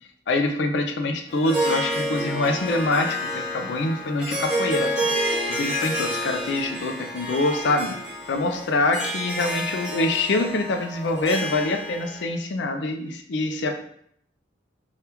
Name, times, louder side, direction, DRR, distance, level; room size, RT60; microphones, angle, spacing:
voice 1, 0.3-5.1 5.5-7.9 8.3-13.8, left 2 dB, 65° left, 5 dB, 0.4 m, -25 dB
Harp, 1.3-12.2, equal, 5° right, 0.7 m, -29 dB
2.9 x 2.3 x 3.3 m, 0.66 s
head